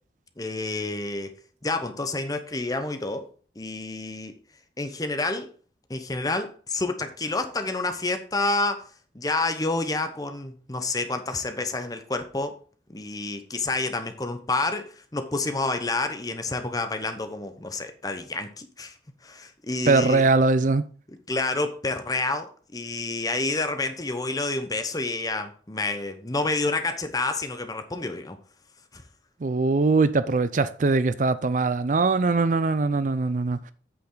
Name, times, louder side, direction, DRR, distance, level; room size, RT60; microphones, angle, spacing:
voice 1, 0.4-1.3 1.6-3.3 3.6-4.4 4.8-5.5 5.9-8.9 9.1-12.5 12.9-18.9 19.2-20.2 21.3-28.4 28.9-29.0, left 2 dB, 20° left, 0.9 m, -29 dB
voice 2, 19.9-20.8 29.4-33.7, right 3 dB, 45° right, 0.4 m, -22 dB
8.5 x 7.1 x 3.9 m
head